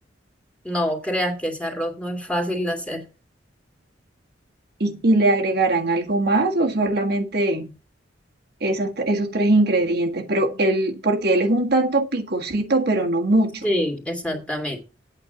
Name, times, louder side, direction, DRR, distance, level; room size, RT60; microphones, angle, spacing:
voice 1, 0.6-3.0 13.6-14.8, equal, 5° left, 2.4 m, -26 dB
voice 2, 4.8-7.7 8.6-13.6, right 2 dB, 60° right, 1.6 m, -21 dB
8.7 x 6.5 x 6.8 m
head